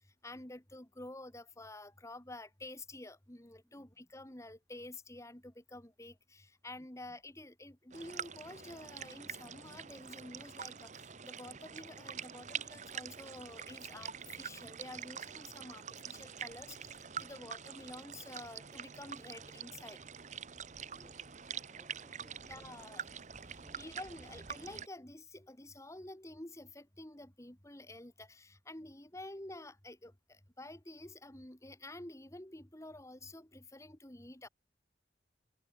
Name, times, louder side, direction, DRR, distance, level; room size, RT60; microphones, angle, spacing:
voice 1, 0.2-20.0 22.5-23.1 23.8-34.5, left 2 dB, 15° left, 1.7 m, -50 dB
sound 1, 7.9-24.9, right 7 dB, 40° right, 1.0 m, -46 dB
voice 2, 20.9-22.9 23.6-23.9, equal, ahead, 3.7 m, -65 dB
head